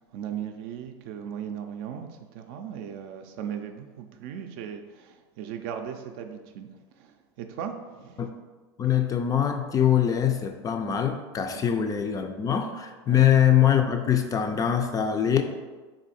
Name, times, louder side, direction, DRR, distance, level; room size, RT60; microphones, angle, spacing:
voice 1, 0.0-6.7 7.0-8.3 11.5-11.7 13.1-13.3, right 8 dB, 60° right, 6 dB, 0.4 m, -37 dB
voice 2, 8.8-15.4, left 9 dB, 25° left, 6 dB, 0.3 m, -23 dB
3.7 x 2.5 x 4.1 m, 1.3 s
hypercardioid pair, 100°, 14 cm